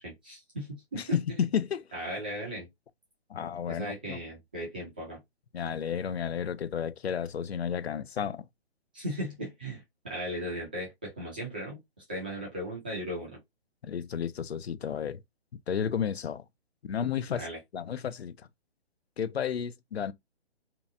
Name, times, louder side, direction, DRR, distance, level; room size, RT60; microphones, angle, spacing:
voice 1, 0.0-1.4 1.9-2.7 3.7-5.2 8.9-11.8 12.1-13.4 17.3-17.6, equal, 10° right, 0.4 m, -37 dB
voice 2, 0.9-1.8 3.3-4.2 5.5-8.4 13.8-15.2 15.7-16.4 16.8-17.5 17.7-18.4 19.2-20.1, left 8 dB, 75° left, 0.5 m, -32 dB
2.8 x 2.2 x 2.5 m
figure-of-eight pair, 135°, 32 cm